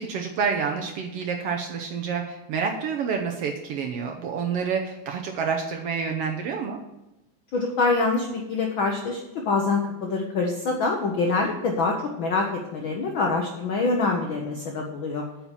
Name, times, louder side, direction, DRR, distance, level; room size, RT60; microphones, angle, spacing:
voice 1, 0.0-6.8, right 6 dB, 70° right, 2 dB, 1.5 m, -28 dB
voice 2, 7.5-15.2, left 3 dB, 75° left, 1 dB, 1.1 m, -25 dB
8.9 x 5.8 x 7.0 m, 0.96 s
omnidirectional pair, 3.4 m